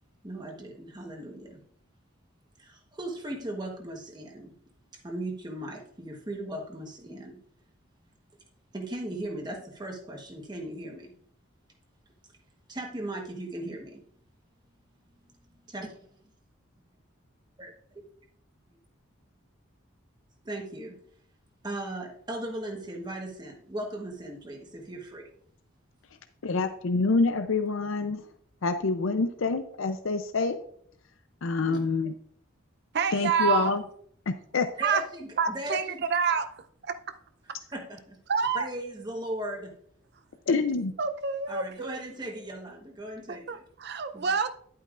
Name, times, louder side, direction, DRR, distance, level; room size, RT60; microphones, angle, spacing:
voice 1, 0.2-1.6 2.6-4.5 5.0-7.4 8.7-11.1 12.7-14.0 15.7-15.9 17.6-17.7 20.4-21.0 21.6-25.3 28.9-29.0 31.6-31.8 34.8-36.0 37.7-38.2 38.5-39.7 40.5-40.6 41.5-43.6 44.1-44.2, right 1 dB, 20° right, 1.2 m, -37 dB
voice 2, 26.4-28.2 28.6-30.6 31.4-32.1 33.1-33.8 34.3-34.7 40.5-40.9, left 3 dB, 70° left, 0.5 m, -26 dB
voice 3, 32.9-33.7 34.8-35.0 35.4-37.0 38.3-38.7 41.0-42.0 43.3-44.6, right 6 dB, 55° right, 0.6 m, -28 dB
10.5 x 8.6 x 2.5 m
head